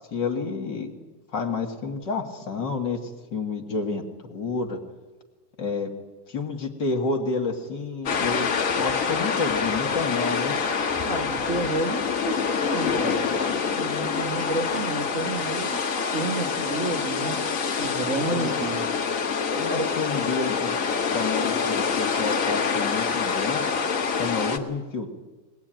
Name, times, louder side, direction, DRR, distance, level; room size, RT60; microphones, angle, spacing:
voice 1, 0.1-0.9 1.3-3.0 3.3-4.8 5.6-5.9 6.3-10.5 18.3-18.5 19.5-20.8 21.1-23.6 24.1-25.1, left 4 dB, 40° left, 3 dB, 2.1 m, -29 dB
sound 1, 8.0-24.6, left 5 dB, 75° left, 0.7 m, -26 dB
voice 2, 11.0-13.3 13.7-15.8 16.1-17.4 17.8-18.9 19.7-19.9, right 2 dB, 85° right, 0 dB, 0.6 m, -30 dB
22.0 x 19.0 x 9.1 m, 1.2 s
omnidirectional pair, 3.6 m